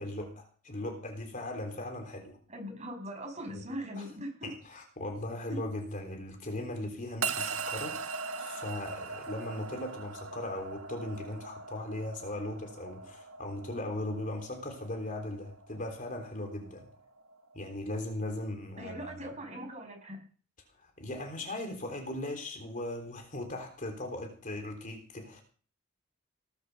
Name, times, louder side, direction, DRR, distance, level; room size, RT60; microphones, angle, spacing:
voice 1, 0.0-2.4 3.5-3.7 4.0-4.1 4.4-16.9 17.5-19.1 20.8-25.4, left 1 dB, 40° left, 4 dB, 3.6 m, -38 dB
voice 2, 2.5-4.5 5.5-5.6 18.8-20.2, equal, 35° right, 3 dB, 6.5 m, -40 dB
sound 1, 7.2-17.6, right 5 dB, 75° right, 1.4 m, -40 dB
19.0 x 8.3 x 6.9 m, 0.40 s
head